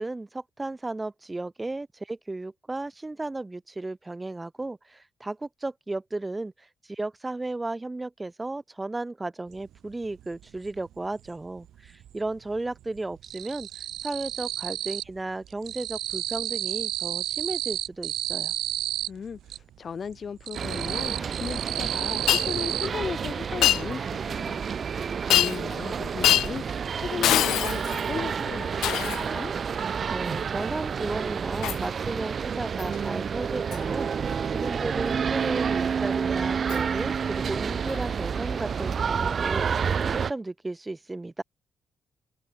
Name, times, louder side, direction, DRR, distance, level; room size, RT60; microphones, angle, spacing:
voice 1, 0.0-18.5 30.1-41.4, right 2 dB, 15° right, 3.6 m, -34 dB
sound 1, 9.6-9.7 10.0-11.3 11.6-12.3 12.5-15.2 15.4-19.6 20.0-22.9, right 12 dB, 75° right, 1.5 m, -32 dB
voice 2, 19.1-24.6 25.3-26.6 27.0-29.5, left 6 dB, 45° left, 3.6 m, -36 dB
sound 2, 20.5-40.3, right 6 dB, 45° right, 1.8 m, -29 dB
Shatter, 22.3-22.5 23.6-23.8 25.3-25.7 26.2-26.5 27.2-28.1 28.8-29.3 31.6-31.8 32.8-33.0 33.7-33.9 36.7-36.8 37.9-38.0, left 13 dB, 80° left, 1.0 m, -23 dB
cardioid pair, 90°, 0 cm